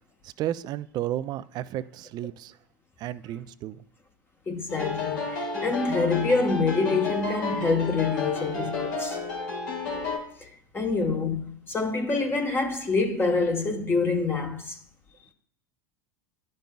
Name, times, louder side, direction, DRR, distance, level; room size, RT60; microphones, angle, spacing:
voice 1, 0.2-2.5 3.0-3.8, right 12 dB, 40° right, 0.4 m, -33 dB
voice 2, 4.5-9.2 10.4-14.8, left 4 dB, 20° left, 1.0 m, -26 dB
sound 1, 4.7-10.2, left 4 dB, 80° left, 2.9 m, -31 dB
11.5 x 5.3 x 2.3 m
hypercardioid pair, 85°, 11 cm